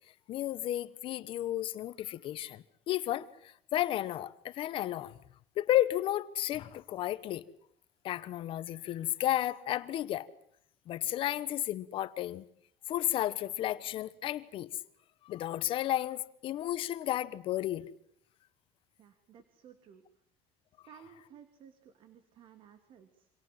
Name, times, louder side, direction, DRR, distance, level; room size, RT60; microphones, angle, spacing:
voice 1, 0.3-5.2 5.6-7.4 8.0-10.3 10.9-12.4 12.9-14.8 15.2-17.9, left 13 dB, 50° left, 1.2 m, -33 dB
voice 2, 19.0-20.2 20.8-23.3, right 8 dB, 45° right, 2.7 m, -56 dB
29.0 x 26.0 x 7.6 m
cardioid pair, 155°, 12 cm